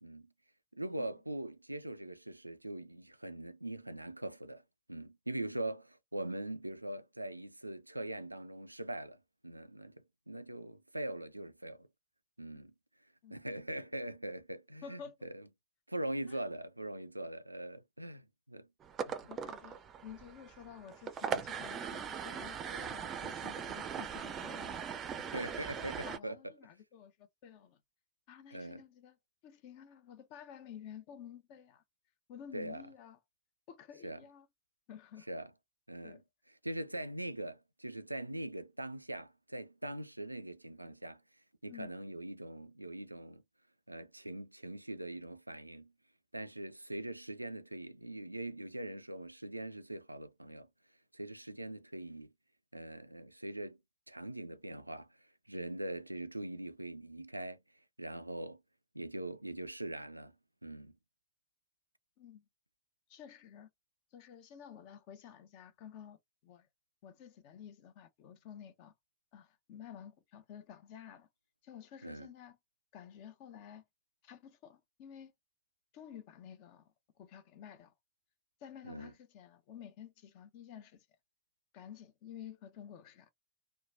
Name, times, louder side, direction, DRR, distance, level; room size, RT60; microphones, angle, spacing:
voice 1, 0.7-4.6 4.9-11.9 12.4-12.7 13.3-15.4 15.9-18.7 19.1-19.2 25.3-26.5 28.5-28.8 32.5-32.8 34.0-34.2 35.3-35.5 35.9-36.2 36.6-41.2 41.6-43.4 43.9-45.9 46.3-50.7 51.1-52.3 52.7-53.8 54.1-55.1 55.5-57.6 58.0-58.6 58.9-60.3 60.6-61.0 72.0-72.3 78.8-79.1, right 1 dB, 85° right, 0.3 m, -42 dB
voice 2, 14.8-15.3 16.3-16.4 19.3-24.8 25.3-27.8 28.3-29.2 29.4-31.8 32.3-33.2 33.7-34.5 34.9-35.3 36.0-36.2 41.7-41.9 62.2-62.4 63.1-63.7 64.1-66.7 67.0-68.9 69.3-71.3 71.6-72.6 72.9-73.8 74.2-75.3 75.9-77.9 78.6-81.1 81.7-83.3, left 8 dB, 45° left, 0.7 m, -52 dB
sound 1, 18.8-26.2, right 7 dB, 25° right, 0.5 m, -40 dB
3.0 x 2.2 x 2.3 m
figure-of-eight pair, 90°, 0 cm